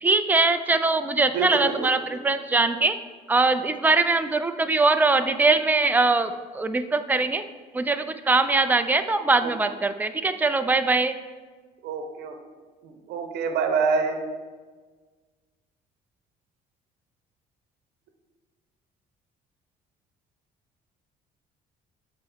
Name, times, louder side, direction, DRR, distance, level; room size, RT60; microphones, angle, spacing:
voice 1, 0.0-3.0 3.3-7.4 7.7-11.1, right 3 dB, 10° right, 9 dB, 0.4 m, -22 dB
voice 2, 1.3-2.2 5.2-5.3 9.4-9.5 11.8-12.3 12.8-14.2, right 5 dB, 80° right, 6 dB, 0.9 m, -27 dB
7.4 x 4.2 x 4.6 m, 1.4 s
cardioid pair, 110°, 17 cm